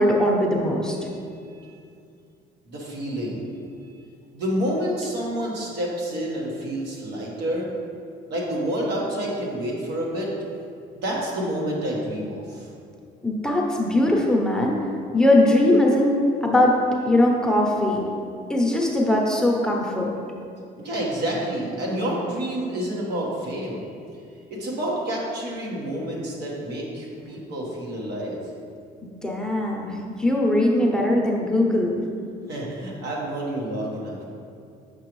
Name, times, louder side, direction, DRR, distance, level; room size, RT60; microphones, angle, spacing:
voice 1, 0.0-1.0 13.2-14.8 15.1-16.2 16.4-16.8 17.0-18.0 18.5-20.1 29.2-32.0, left 1 dB, 5° left, -2 dB, 0.8 m, -20 dB
voice 2, 1.1-1.8 2.7-3.5 4.3-7.7 8.3-10.3 10.9-12.7 20.8-23.9 24.5-28.4 32.5-34.2, right 1 dB, 80° right, -3 dB, 1.4 m, -29 dB
6.8 x 5.0 x 3.1 m, 2.4 s
cardioid pair, 110°, 17 cm